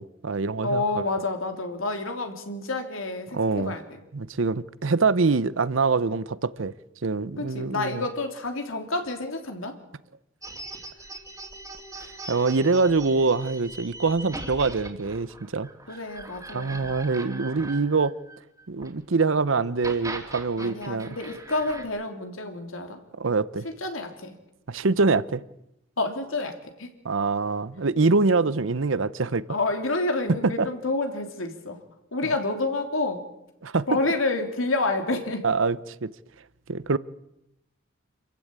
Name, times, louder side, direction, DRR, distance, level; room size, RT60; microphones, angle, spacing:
voice 1, 0.0-0.8 3.3-3.7 4.1-6.7 7.0-8.0 12.3-15.7 16.5-18.1 18.7-21.1 23.2-23.7 24.7-25.4 27.0-29.4 30.6-30.7 32.2-32.3 33.6-33.9 35.4-36.1 36.7-37.0, right 4 dB, 70° right, 0.8 m, -24 dB
voice 2, 0.6-4.0 7.4-9.8 15.9-16.9 20.6-23.0 23.7-24.3 26.0-26.9 29.5-31.8 32.1-33.2 33.9-35.5, left 2 dB, 85° left, 3.3 m, -29 dB
sound 1, 10.4-18.9 19.6-21.8, right 2 dB, 15° right, 3.1 m, -40 dB
27.5 x 15.0 x 8.9 m
head